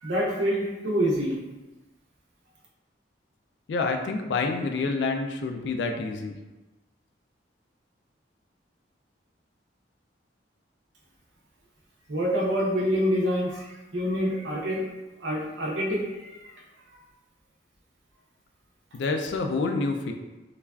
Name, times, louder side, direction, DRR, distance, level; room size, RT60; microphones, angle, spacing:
voice 1, 0.0-1.4 12.1-14.8 15.2-16.4, equal, 80° right, -3 dB, 0.7 m, -26 dB
voice 2, 3.7-6.4 18.9-20.1, left 3 dB, 65° left, 4 dB, 0.3 m, -28 dB
3.2 x 2.3 x 2.3 m, 1.1 s
head